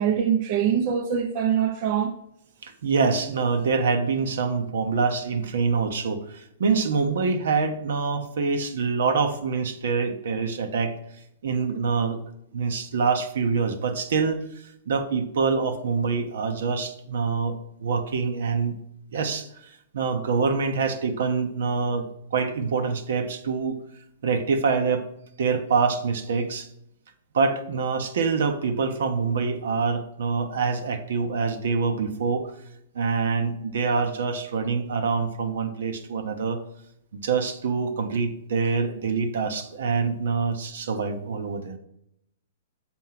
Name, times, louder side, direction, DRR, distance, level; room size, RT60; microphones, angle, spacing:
voice 1, 0.0-2.1, right 8 dB, 45° right, 0.7 m, -23 dB
voice 2, 2.6-10.9 11.4-12.2 12.5-18.8 19.1-23.8 24.2-25.1 25.4-26.7 27.3-32.5 32.9-36.6 37.1-41.8, right 5 dB, 70° right, 1.0 m, -25 dB
6.1 x 4.5 x 5.8 m
hypercardioid pair, 120°, 0 cm